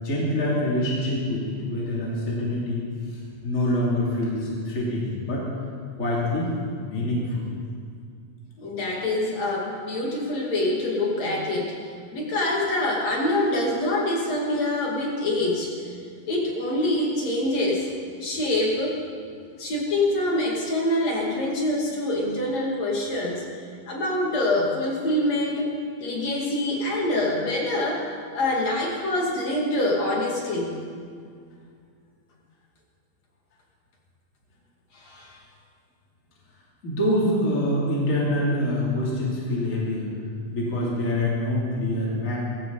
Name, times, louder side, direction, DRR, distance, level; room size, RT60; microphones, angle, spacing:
voice 1, 0.0-2.8 3.1-5.4 5.9-7.5 36.8-40.1 40.5-42.4, left 1 dB, 25° left, -5 dB, 3.3 m, -25 dB
voice 2, 8.6-11.8 12.1-15.7 16.3-17.9 18.2-19.0 19.6-23.4 23.9-25.7 26.0-28.1 28.3-30.8 34.9-35.4, left 1 dB, 50° left, -2 dB, 3.5 m, -25 dB
22.5 x 15.5 x 4.2 m, 2.2 s
omnidirectional pair, 4.1 m